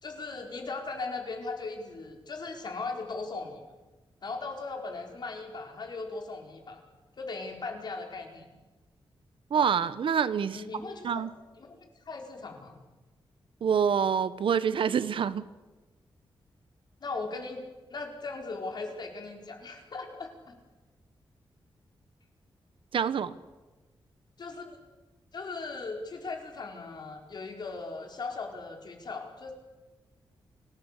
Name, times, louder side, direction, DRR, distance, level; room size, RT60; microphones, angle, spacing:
voice 1, 0.0-3.6 4.2-6.8 7.2-8.5 10.5-11.3 11.6-12.8 17.0-17.6 17.9-20.6 24.4-24.8 25.3-29.5, left 3 dB, 55° left, 3 dB, 4.6 m, -38 dB
voice 2, 9.5-10.6 11.0-11.3 13.6-15.5 22.9-23.3, right 7 dB, 75° right, 15 dB, 1.1 m, -26 dB
28.5 x 18.5 x 8.3 m, 1.2 s
wide cardioid pair, 140°, 9 cm